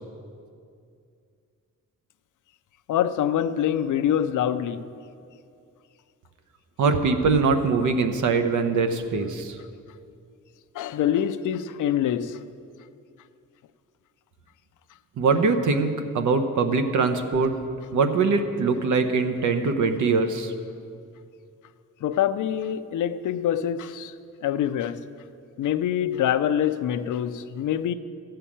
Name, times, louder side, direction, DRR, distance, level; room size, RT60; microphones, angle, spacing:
voice 1, 2.9-4.9 10.7-12.4 22.0-24.1 24.4-25.0 25.6-27.9, left 10 dB, 75° left, 0.6 m, -25 dB
voice 2, 6.8-9.6 15.2-17.5 17.9-20.5, right 4 dB, 70° right, 1.0 m, -22 dB
14.0 x 5.7 x 8.6 m
wide cardioid pair, 155°, 31 cm